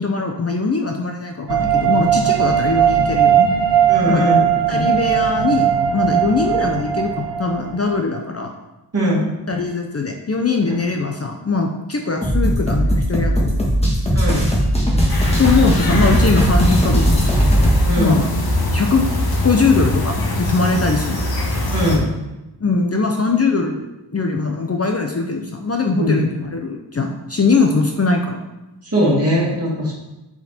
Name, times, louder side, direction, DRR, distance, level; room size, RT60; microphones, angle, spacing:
voice 1, 0.0-3.5 4.1-4.3 4.7-5.7 5.9-8.5 9.5-13.7 15.1-17.6 18.0-18.3 18.7-19.1 19.4-21.3 22.6-23.8 24.1-28.4, left 4 dB, 35° left, 2 dB, 0.7 m, -21 dB
sound 1, 1.5-8.0, right 9 dB, 75° right, 0.9 m, -18 dB
voice 2, 3.9-4.4 4.7-4.8 8.9-9.3 10.6-10.8 14.1-14.5 17.9-18.3 21.7-22.1 26.0-26.2 28.8-29.9, equal, 35° right, -5 dB, 2.5 m, -20 dB
sound 2, 12.2-17.8, equal, 15° left, 1.6 m, -17 dB
sound 3, 15.1-22.0, left 1 dB, 60° left, 1.3 m, -22 dB
8.0 x 4.7 x 4.3 m, 1.0 s
wide cardioid pair, 125°, 43 cm